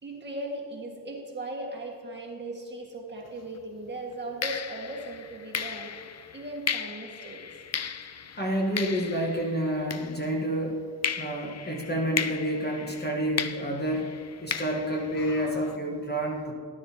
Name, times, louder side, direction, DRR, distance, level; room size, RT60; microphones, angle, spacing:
voice 1, 0.0-6.0 6.3-7.4, right 1 dB, 25° right, -2 dB, 1.6 m, -38 dB
sound 1, 3.3-3.5 4.4-10.6 11.0-15.8, left 7 dB, 40° left, 0.4 m, -36 dB
voice 2, 8.4-10.8 11.2-14.1 14.4-16.5, right 1 dB, 25° left, -2 dB, 1.2 m, -29 dB
12.5 x 11.0 x 2.8 m, 2.2 s
wide cardioid pair, 145°, 42 cm